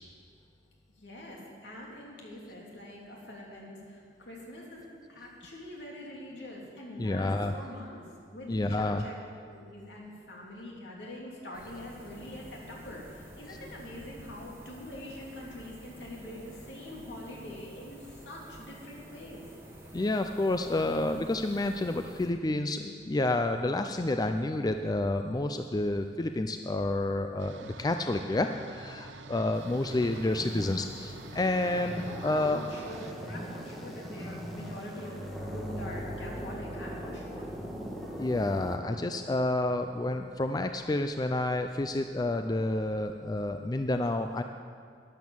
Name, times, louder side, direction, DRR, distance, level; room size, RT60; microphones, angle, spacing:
voice 1, 1.0-8.0 8.3-9.1 9.5-19.4 32.0-37.5, left 1 dB, 70° left, -2 dB, 3.3 m, -44 dB
voice 2, 7.0-7.5 8.5-9.1 19.9-32.6 38.2-44.4, left 2 dB, 20° left, 7 dB, 0.4 m, -29 dB
sound 1, 11.5-22.3, right 1 dB, 15° right, 2.6 m, -49 dB
sound 2, 27.4-33.1, right 2 dB, 90° right, 0.8 m, -47 dB
sound 3, 29.5-38.8, equal, ahead, 1.8 m, -40 dB
12.0 x 10.5 x 7.3 m, 2.2 s
head